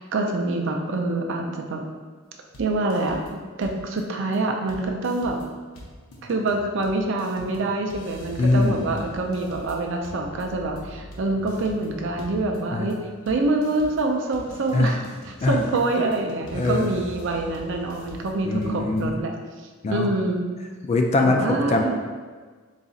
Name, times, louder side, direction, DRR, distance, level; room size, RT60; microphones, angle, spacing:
voice 1, 0.0-1.8 2.6-3.2 3.6-5.4 6.2-13.0 13.3-19.3 19.9-20.4 21.2-22.0, right 2 dB, 60° right, 2 dB, 0.5 m, -26 dB
sound 1, 2.5-3.3 3.6-4.0 4.3-4.4 4.7-19.1, equal, 85° left, 0.7 m, -43 dB
voice 2, 8.4-9.0 12.7-13.0 14.7-14.9 15.4-15.6 16.5-16.9 18.4-19.1 19.8-20.1 20.8-22.0, left 2 dB, 30° left, 2 dB, 0.3 m, -22 dB
4.0 x 3.9 x 2.4 m, 1.5 s
head